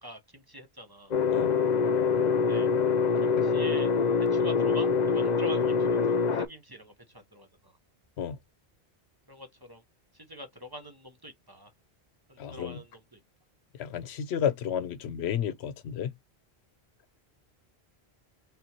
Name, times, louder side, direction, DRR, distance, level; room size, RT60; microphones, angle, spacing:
voice 1, 0.0-1.1 2.5-2.7 3.2-3.9 4.2-7.7 9.3-9.8 10.1-11.7 12.3-13.2, equal, 25° right, 0.9 m, -44 dB
sound 1, 1.1-6.5, left 5 dB, 50° left, 0.6 m, -25 dB
voice 2, 12.4-12.8 13.8-16.1, left 8 dB, 85° left, 0.9 m, -31 dB
4.1 x 3.6 x 2.9 m
omnidirectional pair, 1.1 m